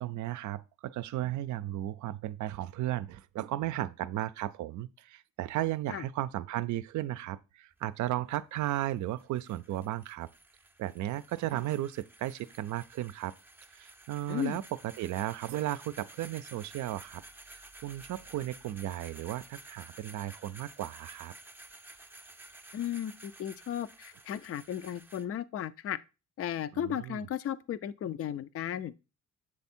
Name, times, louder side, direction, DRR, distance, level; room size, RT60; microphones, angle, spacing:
voice 1, 0.0-10.3 10.8-13.3 13.7-17.2 17.5-21.3 26.7-27.3, right 14 dB, 70° right, 0.5 m, -35 dB
sound 1, 7.7-25.2, right 2 dB, 5° right, 0.5 m, -53 dB
voice 2, 22.7-26.0 26.4-28.9, left 10 dB, 50° left, 0.5 m, -35 dB
7.6 x 3.5 x 4.2 m
cardioid pair, 90°, 30 cm